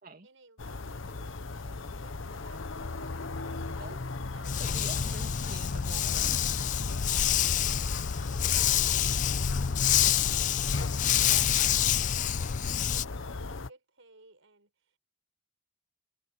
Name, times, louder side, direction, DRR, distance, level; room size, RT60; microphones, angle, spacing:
voice 1, 0.2-4.1 4.3-5.2 6.6-15.0, right 3 dB, 70° right, 5.9 m, -58 dB
sound 1, 0.6-13.7, left 3 dB, 70° left, 1.0 m, -38 dB
Dog, 4.4-13.0, left 9 dB, 40° left, 0.4 m, -27 dB
voice 2, 4.4-6.4 11.1-11.5, right 3 dB, 45° right, 2.5 m, -46 dB
head